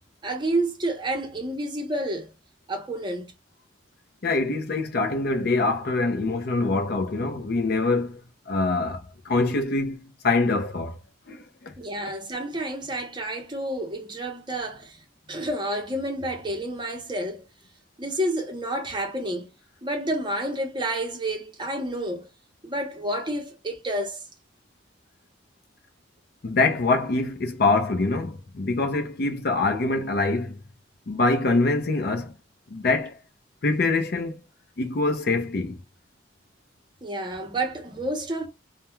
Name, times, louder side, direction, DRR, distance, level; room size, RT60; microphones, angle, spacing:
voice 1, 0.2-2.3 2.7-3.3 11.8-15.0 15.3-17.5 18.0-19.5 19.8-22.3 22.6-24.3 37.0-38.5, right 1 dB, 25° right, 0.7 m, -29 dB
voice 2, 4.2-8.2 8.5-11.0 11.3-11.7 26.4-30.6 31.1-32.3 32.7-33.2 33.6-34.4 34.8-35.8, left 3 dB, 55° left, 0.5 m, -24 dB
2.3 x 2.1 x 2.9 m
head